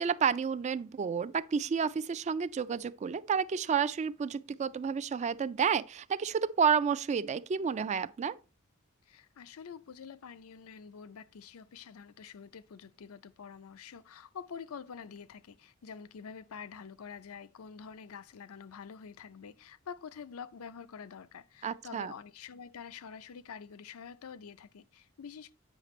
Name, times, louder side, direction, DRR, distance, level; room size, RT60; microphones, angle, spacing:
voice 1, 0.0-8.4 21.6-22.1, right 6 dB, 35° right, 0.3 m, -30 dB
voice 2, 9.1-25.5, left 6 dB, 80° left, 0.5 m, -47 dB
9.1 x 5.8 x 3.1 m
head